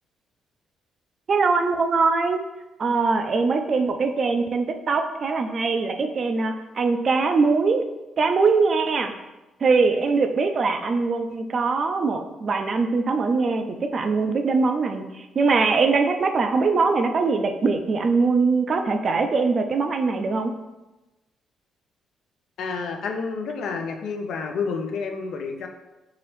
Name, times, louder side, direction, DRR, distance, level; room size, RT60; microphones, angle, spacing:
voice 1, 1.3-2.4 2.8-7.8 8.2-9.1 9.6-20.5, right 4 dB, 45° right, 6 dB, 0.4 m, -22 dB
voice 2, 22.6-25.7, left 5 dB, 75° left, 4 dB, 0.5 m, -29 dB
4.8 x 2.9 x 3.1 m, 1.0 s
cardioid pair, 90°, 0 cm